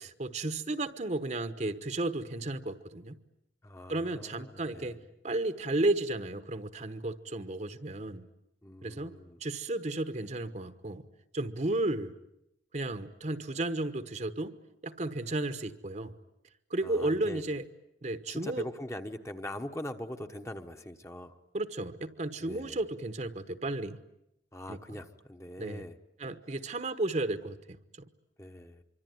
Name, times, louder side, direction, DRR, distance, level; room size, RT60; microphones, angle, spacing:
voice 1, 0.0-3.2 3.9-5.0 5.2-8.3 8.8-11.1 11.3-12.1 12.7-14.6 14.8-16.1 16.7-17.6 18.0-18.7 21.5-24.0 24.7-24.8 25.6-25.8 26.2-27.8, right 2 dB, 40° right, 11 dB, 1.1 m, -33 dB
voice 2, 3.6-5.0 8.6-9.4 16.8-17.4 18.3-21.4 22.4-22.8 24.5-26.0 28.4-28.8, left 1 dB, 15° left, 6 dB, 1.1 m, -42 dB
25.5 x 25.0 x 9.4 m, 0.84 s
head